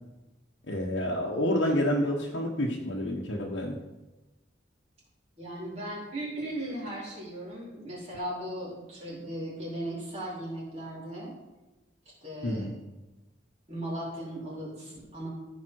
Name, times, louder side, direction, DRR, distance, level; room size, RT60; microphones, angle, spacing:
voice 1, 0.7-3.8 12.4-12.7, left 1 dB, 75° left, -3 dB, 1.2 m, -28 dB
voice 2, 5.4-11.3 12.2-12.7 13.7-15.3, right 1 dB, 35° right, -6 dB, 3.8 m, -37 dB
15.0 x 5.2 x 4.7 m, 1.1 s
head